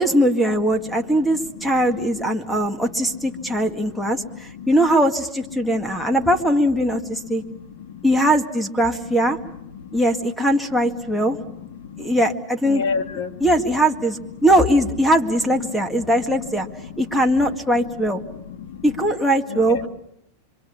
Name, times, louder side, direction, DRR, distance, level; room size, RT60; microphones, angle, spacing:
voice 1, 0.0-7.4 8.0-9.4 9.9-11.4 12.0-12.8 13.4-16.7 17.0-18.2 18.8-19.9, right 1 dB, ahead, 6 dB, 1.9 m, -20 dB
voice 2, 2.5-4.7 5.6-6.2 7.2-8.1 9.7-9.9 11.2-12.1 12.6-13.5 15.9-16.1 16.6-17.4 18.2-18.8 19.5-19.9, left 5 dB, 70° left, 5 dB, 2.5 m, -34 dB
26.5 x 24.0 x 7.2 m, 0.80 s
hypercardioid pair, 125°, 0 cm